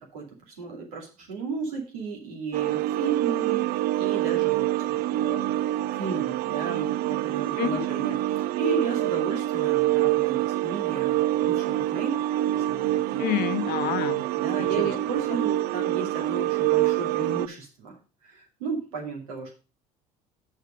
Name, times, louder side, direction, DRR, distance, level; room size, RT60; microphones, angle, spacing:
voice 1, 0.1-5.5 5.9-12.2 12.5-13.4 14.3-18.0 18.2-19.5, right 4 dB, 85° right, 2.6 m, -34 dB
sound 1, 2.5-17.5, right 16 dB, 60° right, 0.4 m, -26 dB
voice 2, 7.6-7.9 13.2-14.3 14.6-15.0, left 14 dB, 60° left, 0.8 m, -28 dB
6.7 x 6.6 x 5.0 m
hypercardioid pair, 70°, 18 cm